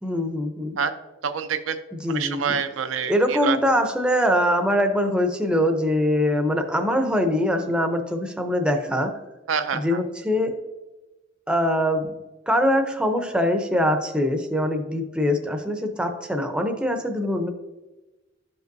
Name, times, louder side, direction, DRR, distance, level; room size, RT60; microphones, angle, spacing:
voice 1, 0.0-0.8 1.9-2.6 3.1-9.1 9.7-10.6 11.5-12.1 12.5-17.5, equal, 5° right, 4 dB, 0.6 m, -23 dB
voice 2, 1.2-1.8 2.1-3.6 9.5-10.0, right 7 dB, 80° right, 8 dB, 0.5 m, -26 dB
12.0 x 5.3 x 2.6 m, 1.1 s
head